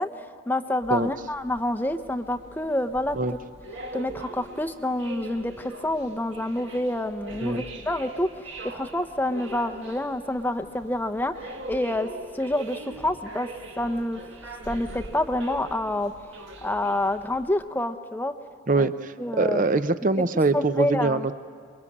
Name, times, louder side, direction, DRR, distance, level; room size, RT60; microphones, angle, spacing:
voice 1, 0.0-3.2 3.9-11.3 11.7-12.1 12.3-13.5 13.8-14.2 14.7-16.1 16.6-18.3 18.8-18.9 19.2-19.8 20.2-20.3 20.5-21.3, left 1 dB, 10° left, 8 dB, 0.7 m, -27 dB
sound 1, 0.8-17.5, right 2 dB, 65° right, 2.2 m, -42 dB
voice 2, 18.7-21.4, right 3 dB, 40° right, 12 dB, 0.7 m, -24 dB
27.5 x 22.5 x 8.6 m, 2.1 s
head